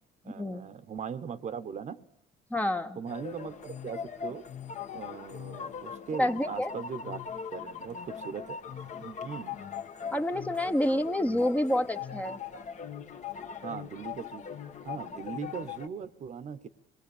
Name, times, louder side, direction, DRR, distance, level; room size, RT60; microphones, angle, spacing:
voice 1, 0.2-2.0 3.0-4.5 4.9-7.2 7.5-8.6 9.0-9.6 13.6-14.4 14.8-16.7, right 7 dB, 45° right, 14 dB, 1.1 m, -39 dB
voice 2, 2.5-3.0 6.2-6.7 10.1-12.4, left 1 dB, 10° left, 8 dB, 1.0 m, -28 dB
sound 1, 3.1-15.9, left 7 dB, 45° left, 1.6 m, -40 dB
26.5 x 20.5 x 8.6 m, 0.77 s
cardioid pair, 110°, 17 cm